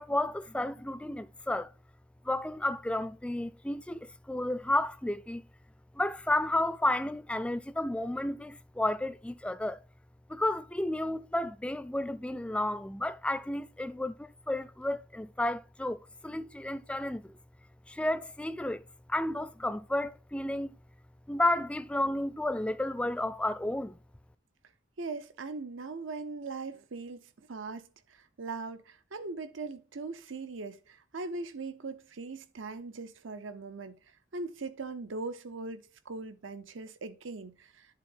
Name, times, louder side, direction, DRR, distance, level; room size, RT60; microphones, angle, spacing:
voice 1, 0.0-1.7 2.2-5.4 6.0-9.8 10.3-17.3 17.9-18.8 19.1-20.7 21.3-24.0, left 1 dB, 5° left, 0.3 m, -32 dB
voice 2, 25.0-34.0 34.3-37.9, right 3 dB, 85° right, 0.8 m, -40 dB
10.5 x 4.0 x 4.5 m
head